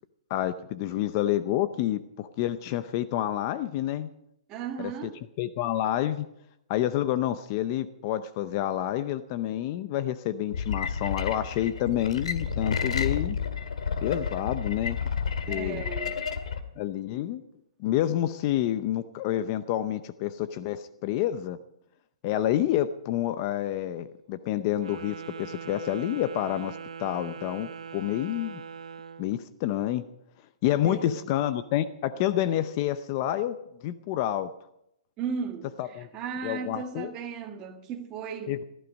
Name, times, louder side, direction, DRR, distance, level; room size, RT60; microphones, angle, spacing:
voice 1, 0.3-4.1 4.8-4.9 5.4-6.3 6.7-13.4 14.0-15.0 15.5-15.8 16.8-17.4 17.8-21.6 22.2-28.6 29.2-30.0 30.6-34.5 35.8-36.1 36.4-37.1 38.5-38.6, left 12 dB, 30° left, 0.6 m, -28 dB
voice 2, 4.5-5.2 15.5-16.2 20.6-20.7 30.8-31.3 35.2-38.6, right 6 dB, 20° right, 1.5 m, -36 dB
sound 1, 10.5-16.6, left 6 dB, 80° left, 2.0 m, -30 dB
Wind instrument woodwind instrument, 24.7-29.3, right 6 dB, 85° right, 1.0 m, -41 dB
15.5 x 14.5 x 5.3 m
hypercardioid pair, 165°, 3 cm